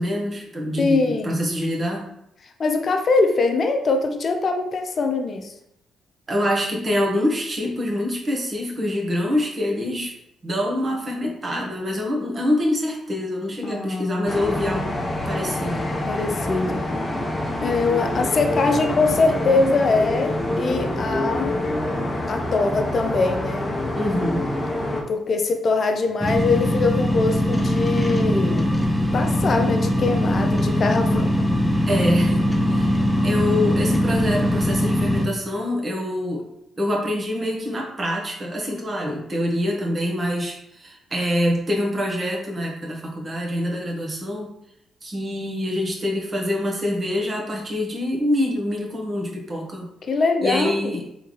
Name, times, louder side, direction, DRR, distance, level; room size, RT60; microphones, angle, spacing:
voice 1, 0.0-2.1 6.3-10.1 10.4-14.9 15.2-15.9 24.0-24.5 31.9-32.9 33.2-36.5 36.8-44.5 45.0-49.9 50.4-51.0, left 1 dB, 40° right, -1 dB, 1.4 m, -25 dB
voice 2, 0.8-1.3 2.6-5.5 13.6-14.3 16.0-16.8 17.6-21.5 22.3-23.7 25.1-28.7 29.1-31.5 50.0-51.0, left 3 dB, 50° left, 4 dB, 0.6 m, -22 dB
sound 1, 14.3-25.0, left 1 dB, 30° left, 1.0 m, -26 dB
sound 2, 26.2-35.2, left 1 dB, ahead, 0.9 m, -21 dB
3.6 x 3.5 x 3.2 m, 0.78 s
hypercardioid pair, 45°, 0 cm